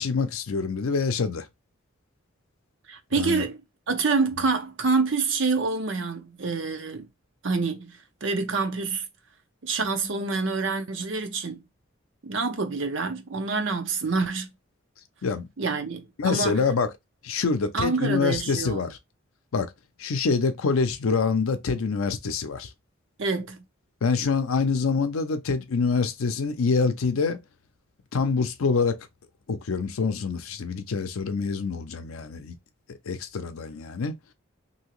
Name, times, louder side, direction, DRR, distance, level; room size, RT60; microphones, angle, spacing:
voice 1, 0.0-1.5 3.2-3.4 15.2-15.5 16.2-16.9 17.2-19.0 19.5-19.7 20.0-22.7 24.0-27.4 28.1-29.0 29.5-32.5 33.1-34.2, left 4 dB, 85° left, 0.5 m, -25 dB
voice 2, 2.9-3.6 3.9-7.1 7.4-7.9 8.2-9.0 9.6-11.6 12.2-14.5 15.6-16.6 17.7-18.8 23.2-23.6, right 4 dB, 65° right, 0.6 m, -27 dB
2.8 x 2.7 x 3.0 m
head